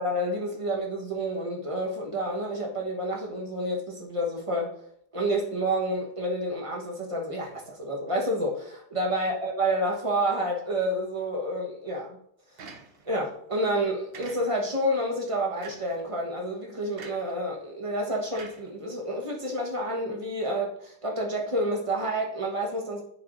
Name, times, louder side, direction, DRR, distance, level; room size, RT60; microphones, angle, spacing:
voice 1, 0.0-4.7 5.1-12.2 13.0-23.0, right 1 dB, 20° right, 0 dB, 1.1 m, -29 dB
sound 1, 12.6-13.2 14.1-14.8 15.6-16.0 17.0-17.4 18.3-19.2, right 4 dB, 50° right, 0.7 m, -46 dB
9.3 x 6.6 x 2.6 m, 0.69 s
omnidirectional pair, 1.8 m